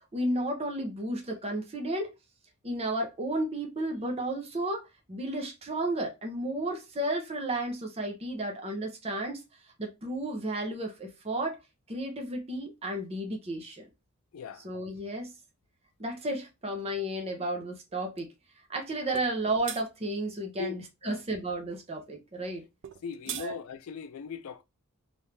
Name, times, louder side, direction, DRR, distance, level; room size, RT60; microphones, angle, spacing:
voice 1, 0.1-2.1 2.6-9.4 9.8-11.6 11.9-13.9 14.6-15.3 16.0-18.3 18.7-22.6 23.4-23.5, right 1 dB, 30° right, 0.8 m, -33 dB
voice 2, 14.3-14.7 20.6-20.8 21.0-21.2 23.0-24.6, left 5 dB, 70° left, 0.4 m, -39 dB
sound 1, 19.1-19.3 19.6-19.8 22.8-23.5, right 11 dB, 55° right, 0.3 m, -38 dB
3.4 x 2.6 x 3.2 m
head